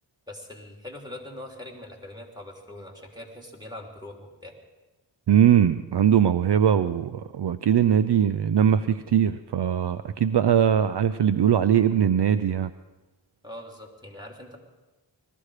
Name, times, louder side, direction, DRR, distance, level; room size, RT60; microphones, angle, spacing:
voice 1, 0.3-4.5 13.4-14.6, left 1 dB, 10° right, 1 dB, 3.2 m, -42 dB
voice 2, 5.3-12.7, right 9 dB, 60° right, 12 dB, 0.6 m, -21 dB
20.0 x 14.0 x 4.9 m, 1.1 s
cardioid pair, 45°, 46 cm